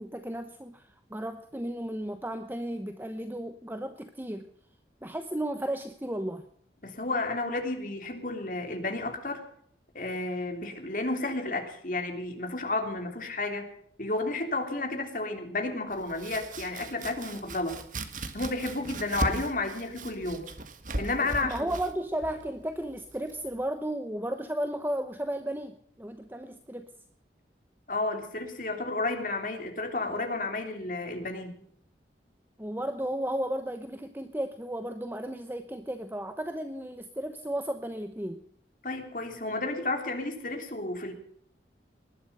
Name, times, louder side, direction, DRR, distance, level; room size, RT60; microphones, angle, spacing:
voice 1, 0.0-4.5 5.0-6.4 19.3-19.4 21.4-26.9 32.6-38.4, right 1 dB, 10° right, 8 dB, 0.9 m, -34 dB
voice 2, 6.8-9.4 9.9-13.7 14.0-17.8 18.3-20.5 21.0-21.7 27.9-31.6 38.8-41.1, left 2 dB, 45° left, 4 dB, 3.3 m, -32 dB
Domestic sounds home sounds, 15.9-23.6, right 2 dB, 45° right, 1.6 m, -38 dB
20.0 x 12.0 x 5.6 m, 0.64 s
head